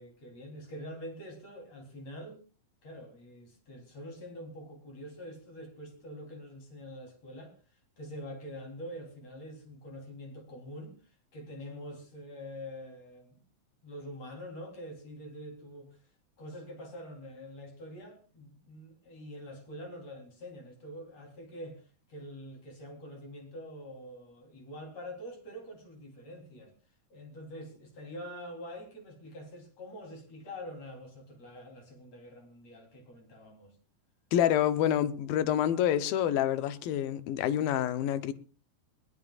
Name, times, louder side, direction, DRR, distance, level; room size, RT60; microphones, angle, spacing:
voice 1, 0.0-2.4 2.8-7.5 8.0-13.4 13.8-16.0 16.4-21.8 22.1-26.7 27.1-33.8, equal, 45° left, 4.6 m, -45 dB
voice 2, 34.3-38.3, left 10 dB, 90° left, 2.7 m, -27 dB
22.0 x 18.5 x 2.4 m
omnidirectional pair, 4.0 m